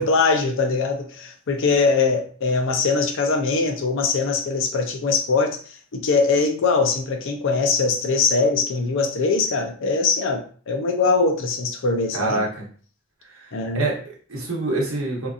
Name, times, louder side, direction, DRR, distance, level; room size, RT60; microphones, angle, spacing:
voice 1, 0.0-12.4 13.5-13.9, left 4 dB, 60° left, 4 dB, 0.5 m, -22 dB
voice 2, 12.1-12.6 13.3-13.5 13.7-15.3, right 2 dB, 65° right, -2 dB, 0.9 m, -26 dB
2.8 x 2.4 x 2.4 m, 0.43 s
head